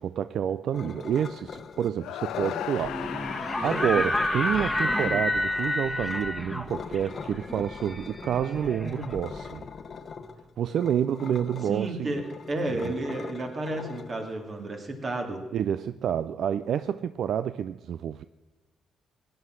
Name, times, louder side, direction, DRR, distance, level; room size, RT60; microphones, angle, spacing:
voice 1, 0.0-9.6 10.6-12.1 12.7-13.0 15.5-18.2, right 9 dB, 70° right, 14 dB, 0.4 m, -29 dB
sound 1, 0.7-1.9 2.2-2.9 3.6-6.2 6.7-14.7, left 5 dB, 50° left, 0.9 m, -41 dB
sound 2, 2.0-6.2, left 12 dB, 90° left, 0.5 m, -38 dB
sound 3, 2.8-9.7, left 1 dB, 5° left, 1.5 m, -30 dB
voice 2, 11.7-15.4, right 2 dB, 40° right, 4 dB, 2.6 m, -32 dB
17.0 x 9.6 x 6.4 m, 1.3 s
cardioid pair, 90°, 0 cm